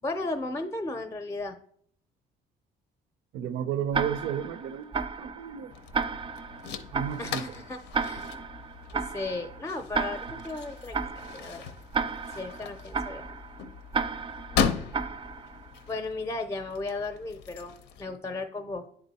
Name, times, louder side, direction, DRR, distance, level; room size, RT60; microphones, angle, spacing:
voice 1, 0.0-1.6 7.2-8.3 8.9-11.7 12.4-13.4 15.9-17.7 18.0-18.9, left 2 dB, 15° left, 0.5 m, -35 dB
voice 2, 3.3-5.7 6.9-7.5, right 9 dB, 85° right, 0.5 m, -32 dB
Tick-tock, 3.9-15.8, right 5 dB, 30° right, 0.4 m, -34 dB
sound 1, 5.7-18.0, left 7 dB, 80° left, 0.6 m, -37 dB
9.8 x 3.7 x 4.1 m
cardioid pair, 110°, 17 cm